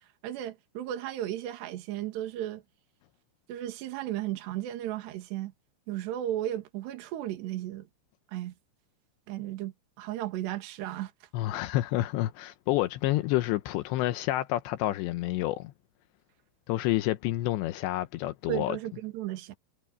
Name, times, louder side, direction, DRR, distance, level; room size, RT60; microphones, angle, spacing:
voice 1, 0.0-2.6 3.5-5.5 5.9-7.9 8.3-8.5 9.3-11.1 18.5-19.5, right 12 dB, 60° right, 3.8 m, -35 dB
voice 2, 11.3-15.7 16.7-18.8, left 16 dB, 85° left, 2.6 m, -29 dB
omnidirectional pair, 6.0 m